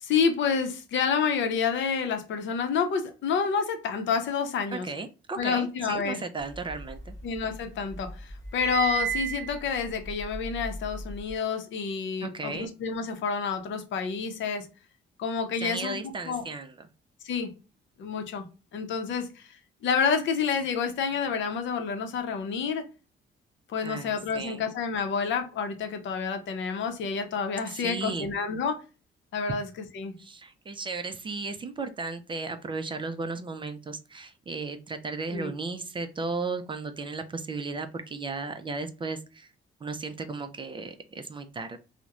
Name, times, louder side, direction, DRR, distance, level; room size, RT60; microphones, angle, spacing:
voice 1, 0.0-4.9 5.4-6.2 7.2-14.7 15.2-16.0 16.3-16.4 17.2-17.5 18.0-18.4 18.7-22.8 23.7-28.8 29.3-30.1 35.3-35.5, left 6 dB, 70° left, 0.6 m, -29 dB
voice 2, 4.7-7.1 12.2-12.7 15.6-16.9 23.8-24.6 27.7-28.3 30.2-39.5 39.8-41.8, right 3 dB, 25° right, 0.3 m, -35 dB
sound 1, 6.5-7.6 7.9-11.3, right 6 dB, 15° left, 0.9 m, -34 dB
2.8 x 2.1 x 2.3 m
cardioid pair, 90°, 20 cm